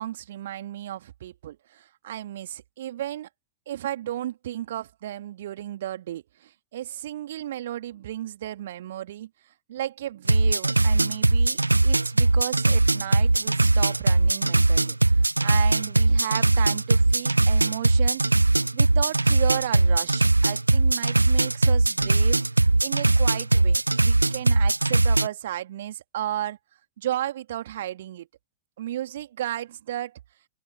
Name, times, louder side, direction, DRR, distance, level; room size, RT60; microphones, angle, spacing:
voice 1, 0.0-3.3 3.7-22.4 22.8-26.6 27.0-28.3 28.8-30.2, right 12 dB, 60° right, 2.6 m, -34 dB
sound 1, 10.2-25.3, right 2 dB, 85° right, 0.7 m, -20 dB
open air
figure-of-eight pair, 90°, 0 cm